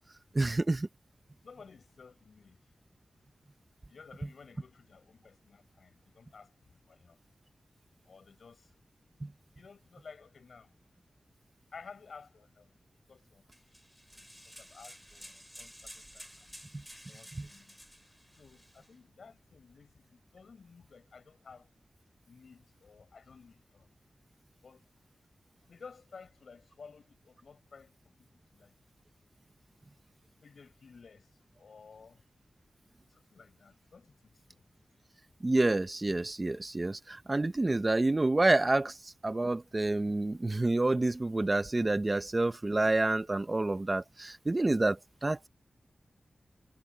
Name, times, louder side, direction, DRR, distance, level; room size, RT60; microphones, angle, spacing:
voice 1, 0.3-0.9 9.2-9.3 16.7-16.8 17.4-17.5 35.4-39.0 39.2-45.5, right 2 dB, 25° right, 0.8 m, -28 dB
voice 2, 1.4-2.6 3.9-6.5 6.9-7.2 8.1-8.7 9.6-10.7 11.7-12.7 13.1-13.4 14.1-14.3 14.6-16.6 17.1-17.8 18.4-21.7 22.3-23.9 24.6-24.8 25.7-28.8 30.4-31.3 31.6-32.2 33.1-34.6, left 5 dB, 80° left, 6.1 m, -54 dB
sound 1, 13.5-18.9, equal, ahead, 4.7 m, -52 dB
wide cardioid pair, 120°, 0 cm